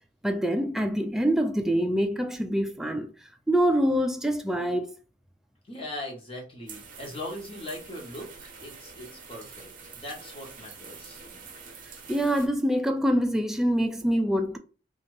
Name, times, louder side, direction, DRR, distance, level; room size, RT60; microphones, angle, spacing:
voice 1, 0.2-3.1 3.5-4.9 12.1-14.6, equal, ahead, 0.3 m, -25 dB
voice 2, 5.7-11.2, left 1 dB, 30° left, 1.1 m, -40 dB
sound 1, 6.7-12.5, right 5 dB, 45° right, 0.7 m, -46 dB
2.7 x 2.5 x 3.1 m
head